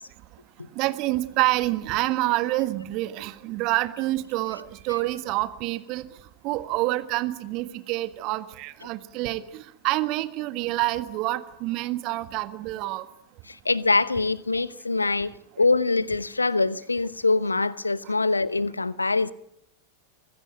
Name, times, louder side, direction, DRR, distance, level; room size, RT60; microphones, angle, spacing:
voice 1, 0.7-6.1 6.4-13.0 15.0-15.1, right 18 dB, 40° right, 1.5 m, -27 dB
voice 2, 13.5-19.3, left 3 dB, 80° left, 0.9 m, -24 dB
25.5 x 16.0 x 9.2 m
figure-of-eight pair, 90°, 0 cm